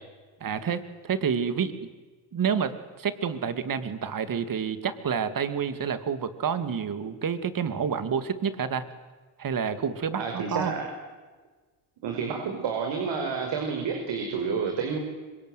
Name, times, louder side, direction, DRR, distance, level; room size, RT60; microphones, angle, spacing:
voice 1, 0.4-1.8 2.3-8.9 9.4-10.7, right 7 dB, 45° right, 11 dB, 2.7 m, -29 dB
voice 2, 10.2-10.8 12.0-15.0, right 5 dB, 65° right, 3 dB, 5.7 m, -29 dB
26.0 x 22.0 x 9.5 m, 1.3 s
supercardioid pair, 80°, 48 cm